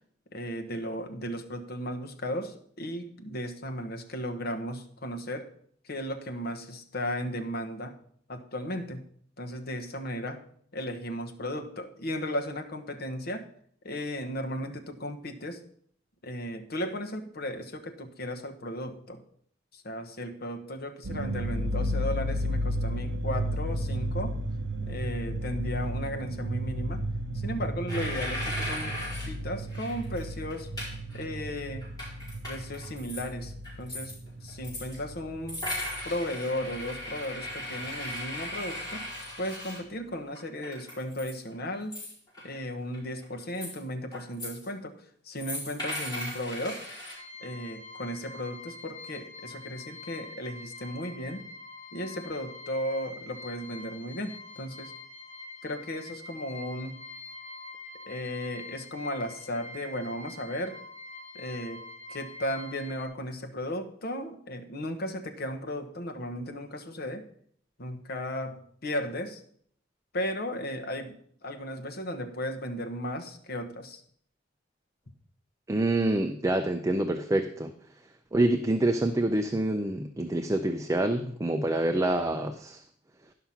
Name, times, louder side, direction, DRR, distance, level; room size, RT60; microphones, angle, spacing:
voice 1, 0.3-5.5 5.8-7.9 8.3-9.0 9.4-10.4 10.7-13.5 13.8-15.6 16.2-19.2 19.7-24.4 24.8-27.0 27.3-28.9 29.2-30.7 31.1-31.9 32.5-33.5 33.8-34.1 34.4-35.6 36.0-39.1 39.4-42.0 42.4-45.0 45.2-46.8 47.4-51.4 51.9-54.9 55.6-57.0 58.1-60.8 61.3-61.8 62.1-67.2 67.8-69.4 70.1-71.1 71.4-74.0, equal, 55° left, 4 dB, 1.1 m, -35 dB
sound 1, 21.0-36.1 36.4-37.5 37.9-38.0 38.3-39.0, equal, 65° right, 0.6 m, -34 dB
sound 2, 27.9-29.3 29.7-30.2 30.5-31.2 31.6-33.2 33.6-35.0 35.5-39.8 40.3-41.5 41.7-42.6 42.9-43.8 44.1-44.7 45.4-47.2, left 1 dB, 20° left, 5.1 m, -37 dB
sound 3, 47.1-63.1, left 2 dB, 35° left, 4.1 m, -45 dB
voice 2, 75.7-77.7 78.3-82.8, right 1 dB, 15° right, 6 dB, 0.5 m, -26 dB
11.0 x 5.8 x 5.7 m, 0.62 s
head